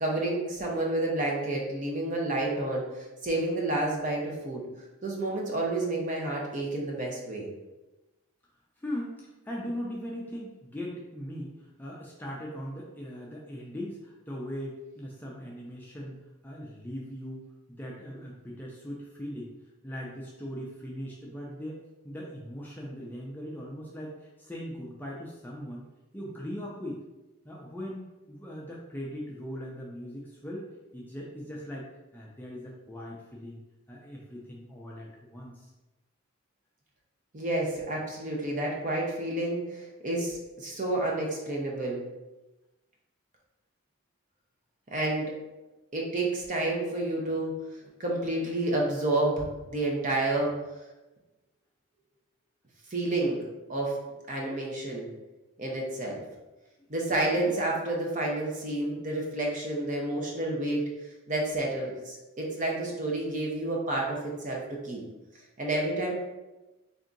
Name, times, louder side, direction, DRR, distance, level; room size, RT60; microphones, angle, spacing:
voice 1, 0.0-4.6 5.0-7.5 37.3-42.0 44.9-45.3 45.9-47.5 48.0-50.5 52.9-53.4 53.7-54.0 54.3-55.1 55.6-56.2 56.9-60.9 61.3-65.0 65.6-66.1, right 2 dB, 35° right, -2 dB, 0.7 m, -30 dB
voice 2, 8.8-19.5 19.8-25.8 26.1-27.0 27.4-30.7 30.9-33.6 33.9-35.7 56.8-57.5, equal, 10° left, -4 dB, 0.4 m, -40 dB
3.5 x 2.7 x 3.8 m, 1.1 s
head